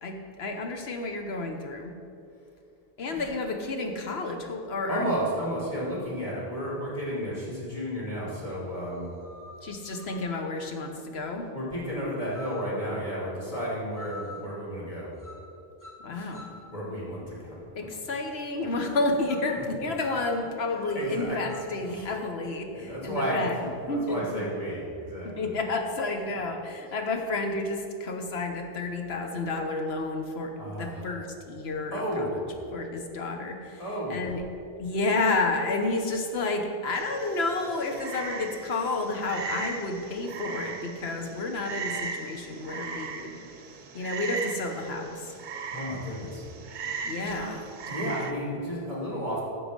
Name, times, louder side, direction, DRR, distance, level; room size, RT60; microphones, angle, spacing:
voice 1, 0.0-1.9 3.0-5.1 9.6-11.5 16.0-16.5 17.7-23.5 23.9-24.4 25.2-32.4 32.7-33.8 34.1-34.4 34.8-43.4 43.9-45.4 47.0-47.6, left 2 dB, 80° left, 4 dB, 1.3 m, -31 dB
voice 2, 4.9-9.1 11.5-15.1 16.1-16.3 16.6-17.5 18.1-18.2 19.5-19.9 20.9-21.6 21.8-22.2 22.7-25.5 26.2-26.4 30.6-31.1 31.9-32.5 33.8-34.3 45.7-46.4 47.2-47.6 47.9-49.4, equal, 35° left, -6 dB, 2.9 m, -33 dB
sound 1, 7.7-7.8 8.7-10.3 12.3-12.8 14.0-14.5 15.2-15.5 15.8-16.7 19.3-19.6 20.0-21.8, left 2 dB, 20° left, 1.3 m, -47 dB
Frog, 36.9-48.3, right 5 dB, 55° right, 0.7 m, -38 dB
11.5 x 6.9 x 5.2 m, 2.6 s
omnidirectional pair, 1.0 m